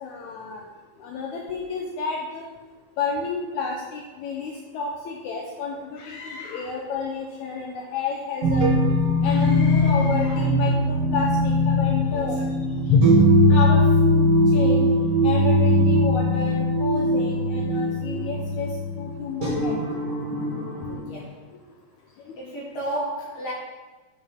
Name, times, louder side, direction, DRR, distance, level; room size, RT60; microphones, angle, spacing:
voice 1, 0.0-0.6 1.0-2.5 3.0-8.7 9.2-12.4 12.9-13.0 13.5-14.9 15.2-18.7 19.0-20.0, left 5 dB, 80° left, 0 dB, 1.7 m, -29 dB
Screaming, 6.0-6.8 9.2-10.6, left 3 dB, 65° left, 2.4 m, -41 dB
sound 1, 8.4-21.0, equal, 45° right, 1.2 m, -20 dB
sound 2, 8.6-10.7, right 8 dB, 80° right, 1.7 m, -35 dB
voice 2, 20.9-21.4 22.4-23.5, right 1 dB, 30° left, -5 dB, 2.2 m, -32 dB
11.0 x 7.1 x 3.6 m, 1.3 s
omnidirectional pair, 4.3 m